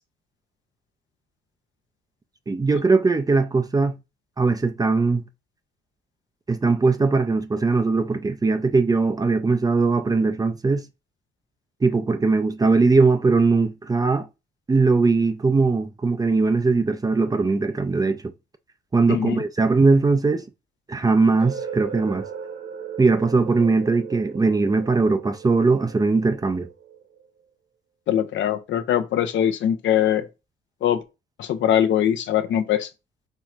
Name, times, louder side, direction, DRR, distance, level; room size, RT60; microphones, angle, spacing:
voice 1, 2.5-4.0 4.4-5.2 6.5-10.8 11.8-14.3 14.7-18.2 18.9-20.4 20.9-22.2 23.0-26.7, right 3 dB, 20° right, 0.4 m, -20 dB
voice 2, 19.1-19.4 28.1-30.3 30.8-31.0 31.4-32.9, left 10 dB, 70° left, 0.6 m, -22 dB
sound 1, 21.4-27.3, right 7 dB, 65° right, 1.4 m, -37 dB
4.5 x 3.1 x 2.4 m
cardioid pair, 90°, 20 cm